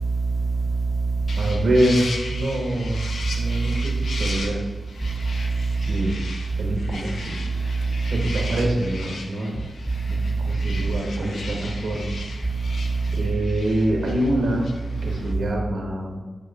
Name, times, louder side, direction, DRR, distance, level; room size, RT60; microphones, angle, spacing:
voice 1, 0.0-1.6 3.1-4.4 5.0-6.0 6.5-6.8 7.5-8.1 9.9-10.8 12.4-13.3 15.0-15.2, right 4 dB, 10° right, 1 dB, 0.8 m, -25 dB
sound 1, 1.3-15.3, left 3 dB, 80° left, 0.7 m, -37 dB
voice 2, 1.4-3.1 3.4-4.6 5.8-6.2 6.6-7.5 8.0-9.6 10.1-12.2 13.1-14.7 15.0-16.2, right 1 dB, 80° right, 1 dB, 1.1 m, -25 dB
9.3 x 4.6 x 2.5 m, 1.3 s
cardioid pair, 50°, 0 cm